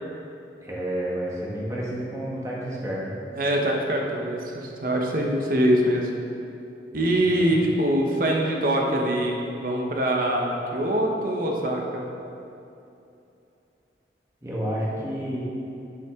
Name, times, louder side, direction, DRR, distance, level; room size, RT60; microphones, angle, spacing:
voice 1, 0.6-3.1 7.2-7.7 14.4-15.4, right 1 dB, 15° right, -6 dB, 1.4 m, -30 dB
voice 2, 3.3-6.1 6.9-12.0, right 1 dB, 50° right, 0 dB, 0.9 m, -24 dB
9.3 x 5.8 x 3.6 m, 2.8 s
head